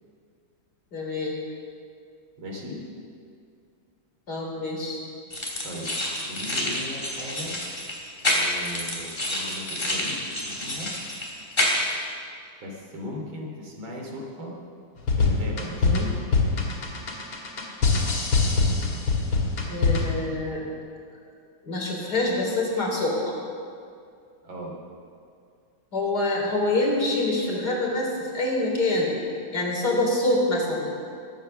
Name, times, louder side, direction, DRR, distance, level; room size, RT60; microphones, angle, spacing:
voice 1, 0.9-1.4 4.3-5.0 15.8-16.1 19.7-20.7 21.6-23.4 25.9-29.1 29.5-30.9, left 2 dB, 50° left, -2 dB, 4.1 m, -26 dB
voice 2, 2.4-2.8 5.6-5.9 6.2-7.6 8.3-10.9 12.6-14.5 15.2-15.9 24.4-24.8, equal, 75° right, -1 dB, 3.6 m, -37 dB
sound 1, 5.3-11.9, left 1 dB, 25° left, 3.1 m, -28 dB
sound 2, 15.0-20.3, left 4 dB, 85° left, 3.2 m, -23 dB
22.0 x 9.1 x 6.7 m, 2.3 s
omnidirectional pair, 2.2 m